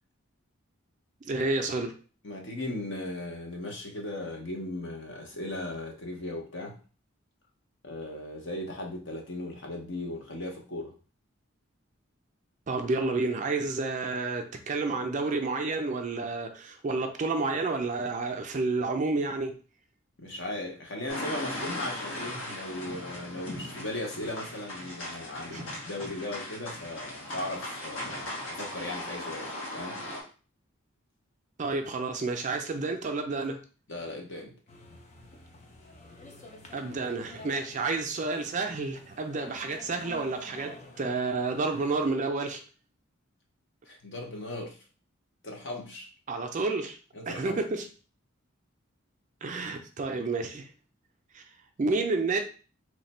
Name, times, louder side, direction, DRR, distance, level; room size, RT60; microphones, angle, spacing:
voice 1, 1.2-1.9 12.7-19.6 25.5-25.7 31.6-33.6 36.7-42.6 46.3-47.0 47.3-47.9 49.4-50.7 51.3-51.4 51.8-52.4, right 3 dB, 35° right, 0.4 m, -30 dB
voice 2, 2.2-6.8 7.8-10.9 20.2-30.0 33.9-34.6 43.9-44.8 45.4-46.1 47.1-47.6, left 1 dB, 60° left, 0.9 m, -37 dB
sound 1, 21.1-30.2, left 1 dB, 75° left, 1.2 m, -38 dB
sound 2, 34.7-42.1, left 2 dB, 35° left, 0.5 m, -49 dB
3.2 x 2.2 x 4.1 m
head